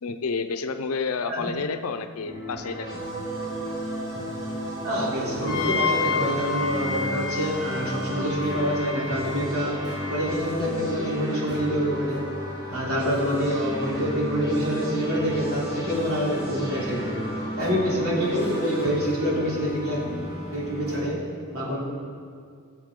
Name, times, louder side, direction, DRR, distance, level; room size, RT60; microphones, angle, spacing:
voice 1, 0.0-3.0, left 4 dB, 85° left, 8 dB, 0.6 m, -30 dB
sound 1, 2.3-21.1, equal, 20° right, 2.3 m, -35 dB
sound 2, 2.6-18.9, right 1 dB, 65° right, 2.9 m, -37 dB
voice 2, 4.8-9.8 10.1-12.3 12.7-17.2 17.5-20.0 20.5-21.2 21.5-21.8, equal, 85° right, -5 dB, 3.2 m, -26 dB
Wind instrument woodwind instrument, 5.4-10.4, left 4 dB, 20° left, 2.0 m, -31 dB
20.5 x 6.9 x 3.7 m, 2.2 s
head